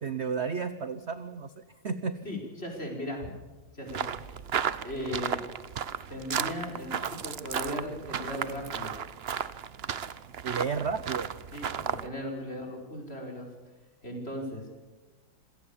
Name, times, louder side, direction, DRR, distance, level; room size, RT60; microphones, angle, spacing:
voice 1, 0.0-2.2 10.4-11.3, right 5 dB, 45° right, 11 dB, 0.9 m, -32 dB
voice 2, 2.2-3.3 3.7-4.4 4.8-5.4 6.1-9.0 11.5-13.5 14.0-14.7, left 1 dB, 30° left, 1 dB, 5.6 m, -37 dB
sound 1, 3.9-12.1, right 8 dB, 90° right, 0.5 m, -34 dB
27.0 x 17.5 x 7.3 m, 1.2 s
omnidirectional pair, 2.3 m